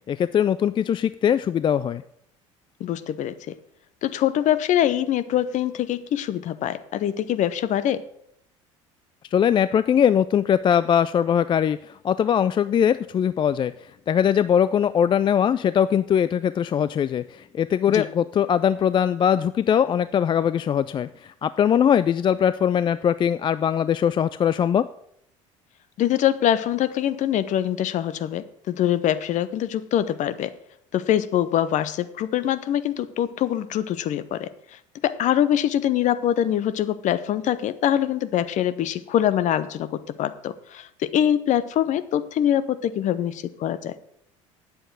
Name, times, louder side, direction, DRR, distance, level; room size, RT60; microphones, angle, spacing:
voice 1, 0.1-2.0 9.3-13.7 14.1-24.9, left 8 dB, 30° left, 15 dB, 0.4 m, -21 dB
voice 2, 2.8-3.3 4.0-8.0 17.9-18.1 26.0-30.5 30.9-43.9, left 11 dB, 50° left, 14 dB, 0.8 m, -24 dB
9.2 x 7.8 x 6.2 m, 0.71 s
hypercardioid pair, 65°, 16 cm